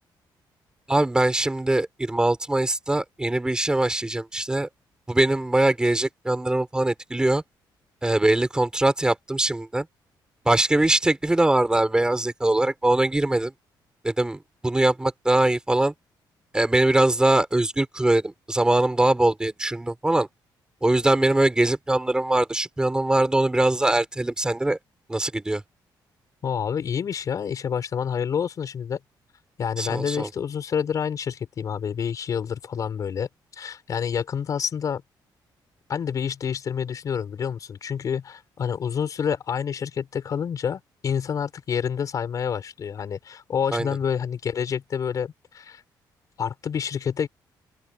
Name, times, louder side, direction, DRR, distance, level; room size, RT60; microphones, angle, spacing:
voice 1, 0.9-4.7 5.1-7.4 8.0-9.9 10.4-13.5 14.0-15.9 16.5-20.3 20.8-24.8 25.1-25.6 29.8-30.3 43.7-43.9, right 2 dB, 10° right, 6.2 m, -22 dB
voice 2, 26.4-29.0 29.6-35.0 35.9-45.8 46.4-47.3, left 7 dB, 45° left, 6.1 m, -28 dB
open air
cardioid pair, 150°, 8 cm